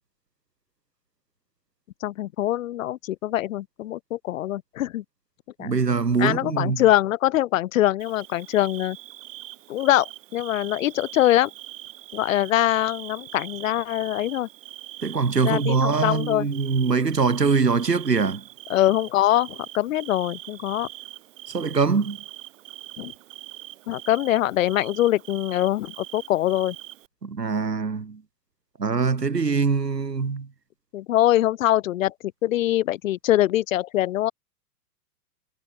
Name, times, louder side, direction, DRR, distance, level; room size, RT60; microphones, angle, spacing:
voice 1, 2.0-5.0 5.6-5.7 6.2-9.0 9.7-11.5 12.1-14.5 15.4-16.5 18.7-20.9 23.0-23.1 23.9-26.8 30.9-32.1 32.4-34.3, left 14 dB, 55° left, 7.2 m, -23 dB
voice 2, 5.6-6.8 15.0-18.4 21.5-22.2 27.2-28.2 28.8-30.5, right 5 dB, 90° right, 2.1 m, -23 dB
Bird / Cricket, 8.0-27.1, right 15 dB, 55° right, 7.7 m, -42 dB
figure-of-eight pair, 110°, 47 cm